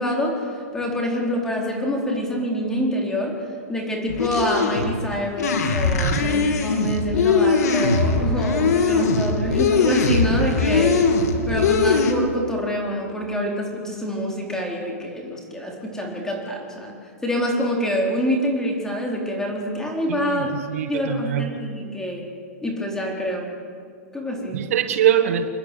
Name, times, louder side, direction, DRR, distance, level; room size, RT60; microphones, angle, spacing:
voice 1, 0.0-11.0 11.4-17.0 17.2-20.5 20.9-22.3 22.6-23.5 24.1-24.6, equal, 5° left, 0 dB, 4.3 m, -26 dB
squeaky sponge on glass, 4.1-12.1, left 4 dB, 80° left, 2.9 m, -20 dB
voice 2, 6.0-6.3 20.1-21.5 24.5-25.5, right 10 dB, 65° right, 8 dB, 1.5 m, -23 dB
29.0 x 11.0 x 9.3 m, 2.3 s
hypercardioid pair, 145°, 8 cm